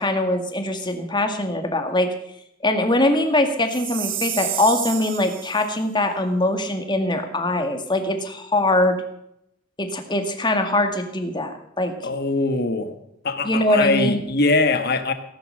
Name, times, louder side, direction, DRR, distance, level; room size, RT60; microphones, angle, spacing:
voice 1, 0.0-2.1 2.6-9.0 9.8-11.9 13.4-14.2, left 1 dB, 20° left, 6 dB, 2.1 m, -22 dB
Chime, 3.7-5.7, right 11 dB, 65° right, 1.6 m, -30 dB
voice 2, 12.0-12.9 13.2-15.1, left 3 dB, 50° left, 8 dB, 1.6 m, -22 dB
18.0 x 11.5 x 6.6 m, 0.77 s
head